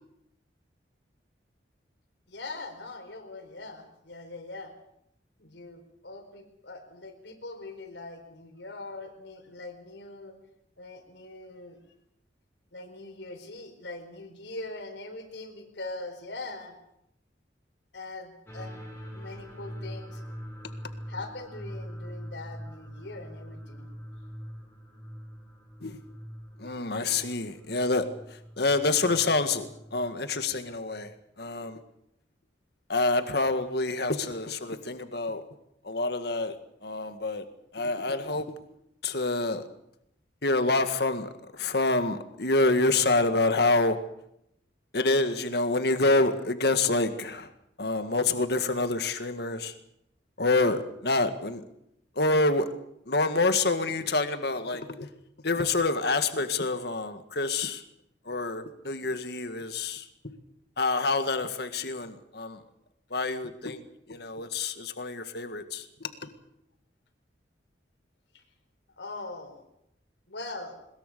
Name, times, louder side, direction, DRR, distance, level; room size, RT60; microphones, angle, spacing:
voice 1, 2.3-4.7 5.4-10.4 10.8-11.8 12.7-16.8 17.9-18.8 19.1-20.2 21.1-23.9 26.6-26.8 68.3-68.4 69.0-69.6 70.3-70.8, left 2 dB, 75° left, 6 dB, 4.3 m, -42 dB
sound 1, 18.5-31.1, equal, 10° left, 5.4 m, -43 dB
voice 2, 26.6-31.8 32.9-35.4 35.8-36.6 36.8-37.4 37.7-38.5 39.0-39.7 40.4-44.0 44.9-47.5 47.8-49.7 50.4-51.6 52.2-52.7 53.1-55.1 55.4-57.8 58.3-60.4 60.8-62.6 63.1-63.8 64.1-66.3, left 3 dB, 60° left, 8 dB, 1.9 m, -27 dB
21.5 x 21.5 x 6.8 m, 0.77 s
head